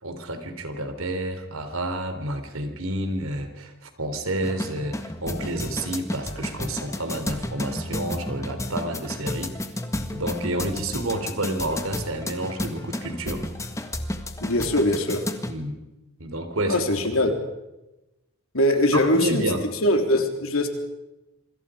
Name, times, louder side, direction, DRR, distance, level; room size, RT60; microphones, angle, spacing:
voice 1, 0.0-9.6 10.1-13.4 15.5-15.8 16.2-17.2 18.9-19.7, right 1 dB, 70° right, 8 dB, 3.7 m, -30 dB
sound 1, 4.4-15.5, left 1 dB, 15° left, 1.6 m, -32 dB
voice 2, 14.4-15.2 16.7-17.3 18.5-19.4 19.8-20.7, left 1 dB, 70° left, 5 dB, 3.5 m, -21 dB
27.0 x 25.5 x 5.1 m, 0.98 s
head